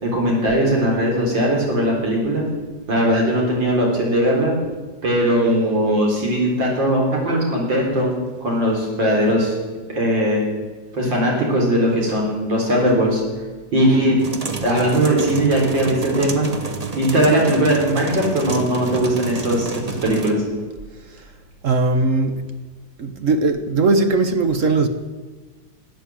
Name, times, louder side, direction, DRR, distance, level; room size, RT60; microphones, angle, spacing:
voice 1, 0.0-2.4 2.9-4.5 5.0-8.1 8.4-9.5 9.9-10.4 10.9-13.2 13.7-14.2 14.6-16.5 17.0-20.4, right 1 dB, 75° right, 4.7 m, -19 dB
sound 1, 14.2-20.3, right 3 dB, 25° right, 0.9 m, -30 dB
voice 2, 21.6-22.4 23.0-24.9, right 3 dB, 50° right, 1.1 m, -19 dB
13.0 x 9.0 x 8.7 m
omnidirectional pair, 2.1 m